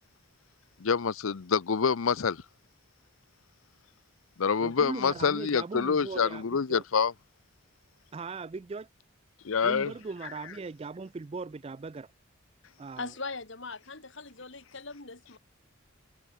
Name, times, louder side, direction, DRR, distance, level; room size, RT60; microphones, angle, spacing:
voice 1, 0.8-2.4 4.4-7.1 9.4-9.9, left 6 dB, 80° left, 0.6 m, -26 dB
voice 2, 4.6-6.4 6.7-6.8 8.1-8.9 9.6-12.1 12.8-13.1, right 4 dB, 30° right, 0.4 m, -39 dB
voice 3, 13.0-15.4, left 3 dB, 60° left, 3.1 m, -40 dB
head